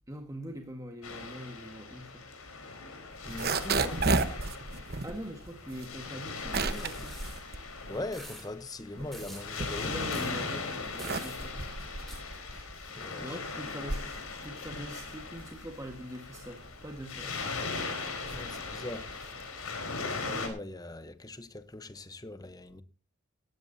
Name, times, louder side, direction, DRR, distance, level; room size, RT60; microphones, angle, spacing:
voice 1, 0.1-2.2 5.0-7.1 9.7-11.6 13.2-17.3 19.2-19.3, equal, 15° right, 1.6 m, -43 dB
Waves surf, 1.0-20.5, left 4 dB, 80° left, 4.4 m, -39 dB
sound 1, 3.1-8.4 8.8-10.2 10.7-19.5, right 3 dB, 45° right, 1.1 m, -34 dB
voice 2, 3.2-4.0 7.9-10.0 12.5-13.4 17.2-17.3 18.2-19.1 20.3-22.8, left 2 dB, 15° left, 0.9 m, -41 dB
sound 2, 6.6-7.4 8.1-8.4 9.1-9.5 10.1-10.3 11.0-11.4 12.1-12.2, equal, ahead, 5.3 m, -47 dB
18.5 x 14.5 x 2.8 m
head